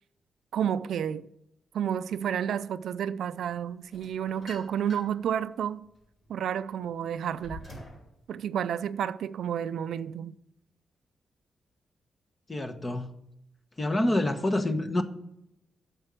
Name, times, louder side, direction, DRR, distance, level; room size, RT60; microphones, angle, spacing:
voice 1, 0.5-1.3 1.7-5.9 6.3-7.6 8.3-10.3, right 9 dB, 85° right, 0.4 m, -30 dB
sound 1, 3.9-5.3 5.8-8.1, equal, 50° left, 4.5 m, -46 dB
voice 2, 12.5-13.1 13.8-15.0, left 1 dB, 25° left, 1.0 m, -27 dB
8.9 x 6.8 x 7.6 m
cardioid pair, 115°, 0 cm